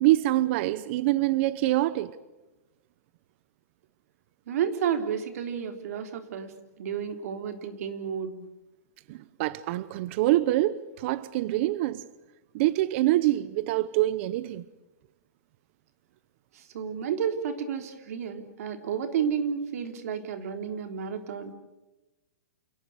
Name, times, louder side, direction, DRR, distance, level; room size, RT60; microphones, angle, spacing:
voice 1, 0.0-2.1 9.1-12.0 12.5-14.6, right 16 dB, 45° right, 0.9 m, -25 dB
voice 2, 4.5-8.3 16.5-21.5, right 7 dB, 65° right, 3.6 m, -31 dB
28.5 x 18.5 x 8.2 m
hypercardioid pair, 150°, 9 cm